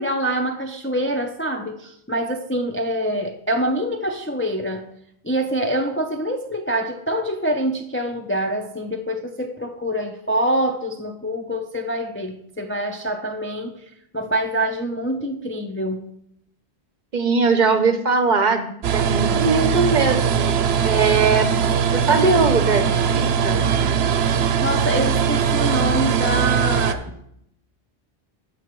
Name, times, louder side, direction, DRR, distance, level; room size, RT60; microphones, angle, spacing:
voice 1, 0.0-4.9 5.2-13.8 14.1-16.1 24.6-27.1, right 1 dB, 20° left, 3 dB, 0.4 m, -25 dB
voice 2, 17.1-20.6 20.8-21.5 21.9-22.9 23.1-23.6, right 4 dB, 50° right, 8 dB, 0.8 m, -20 dB
sound 1, 18.8-26.9, right 7 dB, 75° right, 0.9 m, -20 dB
15.0 x 5.8 x 3.1 m, 0.74 s
omnidirectional pair, 1.1 m